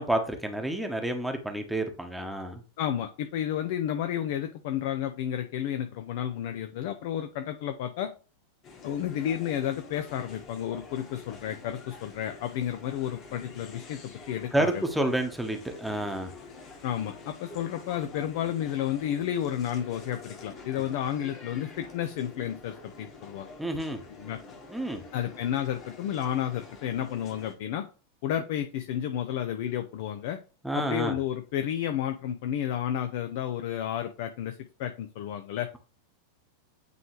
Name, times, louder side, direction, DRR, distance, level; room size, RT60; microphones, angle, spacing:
voice 1, 0.0-2.6 14.5-16.3 23.6-24.0 24.7-25.0 30.6-31.2, right 1 dB, 5° right, 4 dB, 1.1 m, -29 dB
voice 2, 2.8-8.1 8.8-14.8 16.8-23.5 24.1-24.4 25.1-27.9 28.2-30.4 30.7-35.7, left 10 dB, 50° left, 7 dB, 0.6 m, -31 dB
sound 1, 8.6-27.5, left 3 dB, 30° left, 1.5 m, -47 dB
9.2 x 3.3 x 3.2 m, 0.36 s
figure-of-eight pair, 90°, 0 cm